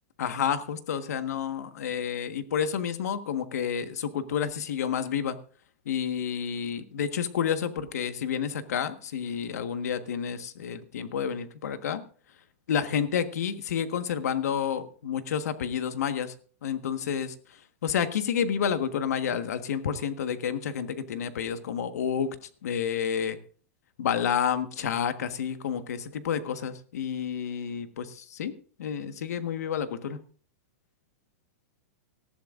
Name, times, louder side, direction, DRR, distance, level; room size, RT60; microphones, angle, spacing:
voice 1, 0.2-5.4 5.8-12.0 12.7-16.3 16.6-22.4 22.6-23.4 24.0-30.2, left 8 dB, 85° left, 9 dB, 1.5 m, -30 dB
19.0 x 14.5 x 2.6 m, 0.42 s
supercardioid pair, 175°, 8 cm